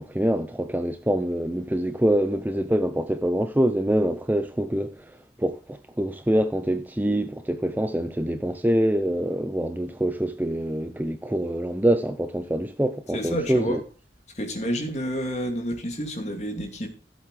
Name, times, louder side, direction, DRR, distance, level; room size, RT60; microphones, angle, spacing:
voice 1, 0.0-13.8, right 1 dB, 10° right, 0.5 m, -25 dB
voice 2, 13.1-13.8 14.3-16.9, equal, 40° left, 2.5 m, -29 dB
15.5 x 8.0 x 3.3 m
head